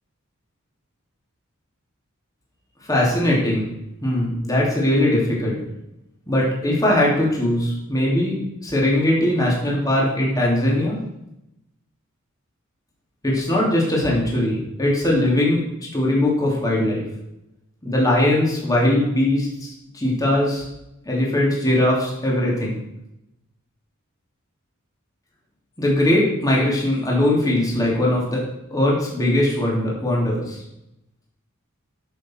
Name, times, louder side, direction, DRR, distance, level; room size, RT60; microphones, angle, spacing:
voice 1, 2.9-3.7 4.0-5.6 6.3-8.4 8.6-11.0 13.2-15.6 15.9-17.0 17.8-19.7 19.9-20.6 21.0-22.8 25.8-28.4 28.7-30.6, left 1 dB, 15° left, -4 dB, 3.0 m, -20 dB
12.0 x 7.0 x 4.6 m, 0.86 s
head